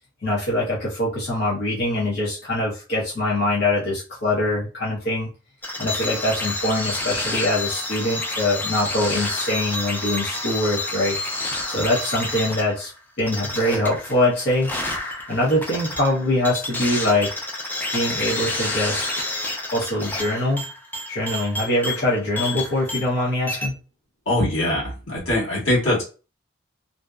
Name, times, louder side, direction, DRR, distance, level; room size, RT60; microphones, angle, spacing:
voice 1, 0.2-5.3 5.8-11.2 11.7-12.9 13.2-14.7 15.3-17.3 17.9-19.1 19.7-20.6 21.1-23.7, left 1 dB, 55° left, -6 dB, 0.8 m, -23 dB
sound 1, 5.6-23.2 23.5-23.7, left 2 dB, 10° left, 0.4 m, -29 dB
voice 2, 24.2-26.0, left 1 dB, 90° left, -5 dB, 1.4 m, -22 dB
2.6 x 2.0 x 2.3 m, 0.33 s
head